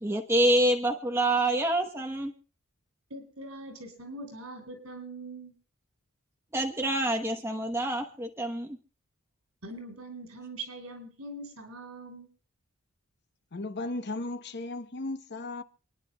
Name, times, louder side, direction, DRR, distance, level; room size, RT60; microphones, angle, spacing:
voice 1, 0.0-2.3 6.5-8.8, right 1 dB, 10° right, 1.1 m, -26 dB
voice 2, 3.1-5.5 9.6-12.3, right 2 dB, 70° right, 6.0 m, -42 dB
voice 3, 13.5-15.6, left 2 dB, 50° left, 0.9 m, -35 dB
28.5 x 10.5 x 2.3 m
head